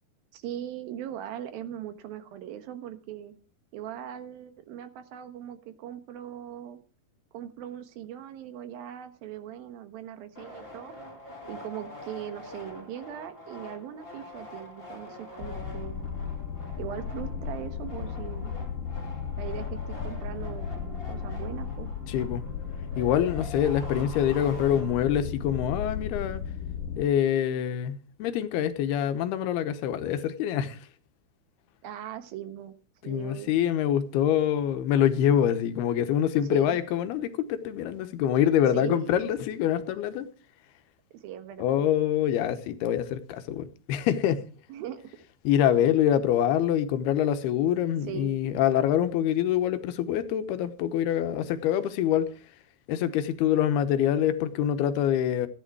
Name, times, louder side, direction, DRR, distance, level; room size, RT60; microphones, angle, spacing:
voice 1, 0.3-3.3 3.7-6.8 7.3-10.9 11.5-16.2 16.8-18.5 19.4-21.9 31.8-32.8 33.0-33.5 36.5-36.8 38.7-39.3 41.1-41.8 44.7-45.2 48.1-48.3, right 11 dB, 75° right, 2.9 m, -40 dB
sound 1, 10.3-25.3, left 1 dB, 15° left, 2.5 m, -45 dB
sound 2, 15.4-27.0, left 7 dB, 65° left, 2.5 m, -35 dB
voice 2, 22.1-22.4 23.0-26.4 27.0-30.9 33.1-40.3 41.6-44.4 45.4-52.3 52.9-55.5, left 10 dB, 85° left, 3.0 m, -25 dB
14.0 x 10.5 x 4.6 m
omnidirectional pair, 4.4 m